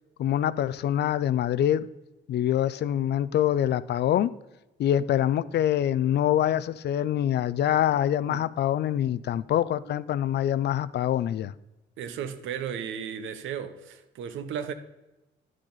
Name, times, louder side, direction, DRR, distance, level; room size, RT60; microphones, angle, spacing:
voice 1, 0.2-1.9 2.3-4.3 4.8-11.5, left 11 dB, 60° left, 0.4 m, -25 dB
voice 2, 12.0-14.7, right 8 dB, 80° right, 0.8 m, -35 dB
10.5 x 6.4 x 3.9 m
cardioid pair, 90°, 20 cm